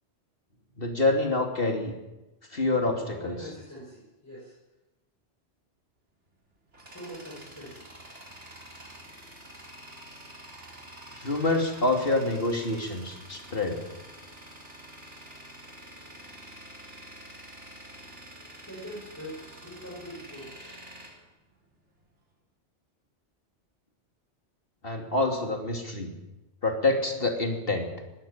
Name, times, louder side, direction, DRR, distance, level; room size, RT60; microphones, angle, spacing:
voice 1, 0.8-1.9 2.5-3.4 11.1-13.8 24.8-26.1 26.6-27.9, left 2 dB, 55° left, 3 dB, 3.1 m, -27 dB
voice 2, 3.1-4.5 6.9-7.9 18.7-20.6, equal, 15° left, -8 dB, 7.6 m, -43 dB
Tools, 6.3-22.1, right 1 dB, 90° right, 4.2 m, -47 dB
21.5 x 18.0 x 7.4 m, 1.0 s
omnidirectional pair, 1.2 m